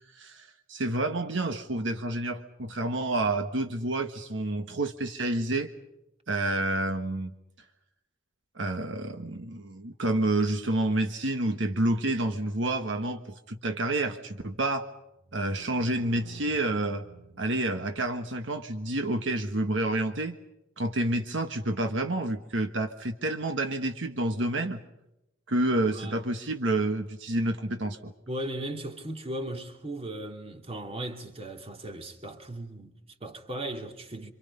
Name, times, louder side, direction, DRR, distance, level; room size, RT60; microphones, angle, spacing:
voice 1, 0.1-5.7 6.3-7.3 8.5-14.9 15.3-17.0 17.4-20.4 20.8-24.8 25.5-28.1, right 1 dB, 65° right, 1.4 m, -29 dB
sound 1, 15.2-18.2, right 4 dB, 80° right, 2.1 m, -51 dB
voice 2, 28.3-34.3, right 1 dB, 30° right, 2.8 m, -37 dB
27.0 x 26.5 x 5.5 m
head